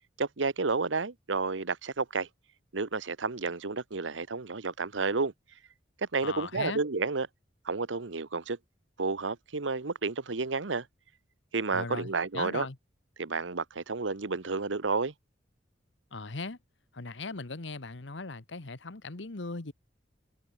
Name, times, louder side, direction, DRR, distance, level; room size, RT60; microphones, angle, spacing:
voice 1, 0.2-2.3 2.7-5.3 6.0-7.3 7.6-8.6 9.0-10.9 11.5-12.7 13.2-15.1, right 4 dB, 90° right, 1.1 m, -31 dB
voice 2, 6.2-6.8 11.7-12.8 16.1-16.6 16.9-19.7, left 3 dB, 75° left, 1.3 m, -38 dB
head